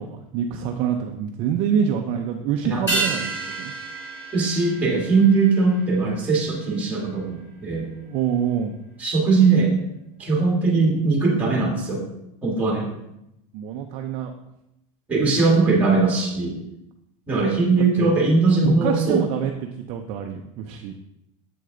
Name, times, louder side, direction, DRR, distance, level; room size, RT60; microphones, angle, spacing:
voice 1, 0.0-3.7 8.0-8.7 13.5-14.3 18.0-18.1 18.6-20.9, right 8 dB, 35° right, 4 dB, 0.5 m, -26 dB
sound 1, 2.9-7.6 7.8-7.9, right 3 dB, 15° left, 2.8 m, -31 dB
voice 2, 4.3-7.9 9.0-9.7 10.2-12.1 12.4-13.0 15.1-16.6 17.3-19.2, right 4 dB, 10° right, -1 dB, 1.6 m, -20 dB
7.9 x 6.4 x 3.8 m, 0.85 s
supercardioid pair, 175°, 17 cm